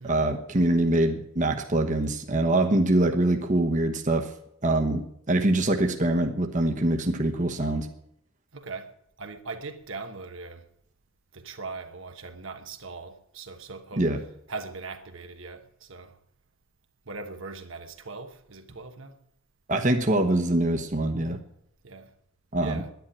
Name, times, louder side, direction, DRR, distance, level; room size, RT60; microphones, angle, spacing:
voice 1, 0.0-4.3 4.6-7.9 14.0-14.2 19.7-21.4 22.5-22.8, right 1 dB, 35° right, 1.1 m, -24 dB
voice 2, 8.5-8.9 9.2-10.7 11.3-14.0 14.5-16.2 17.1-19.2 21.8-22.1 22.6-22.9, right 3 dB, 65° right, 1.2 m, -40 dB
10.5 x 10.5 x 10.0 m
head